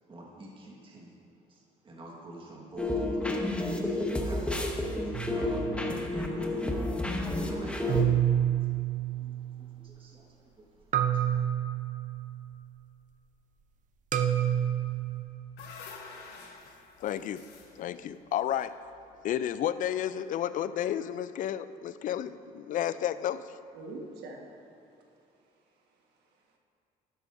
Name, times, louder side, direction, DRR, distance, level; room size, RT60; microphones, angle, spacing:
voice 1, 0.1-1.1 1.5-4.7 5.0-8.2 8.6-8.7 9.1-11.4, right 2 dB, 30° right, -3 dB, 1.5 m, -48 dB
sound 1, 2.8-8.0, left 1 dB, 5° left, 0.9 m, -30 dB
sound 2, 5.1-6.0 7.9-9.6 10.9-12.4 14.1-15.2, right 11 dB, 50° right, 0.6 m, -28 dB
sound 3, 15.1-19.3, left 4 dB, 80° left, 1.2 m, -49 dB
voice 2, 17.0-17.4 17.8-18.7 19.2-23.5, left 10 dB, 50° left, 14 dB, 0.4 m, -31 dB
voice 3, 23.7-24.6 25.0-26.6, right 2 dB, 80° right, 1 dB, 1.4 m, -47 dB
12.5 x 9.7 x 2.6 m, 2.7 s
cardioid pair, 110°, 17 cm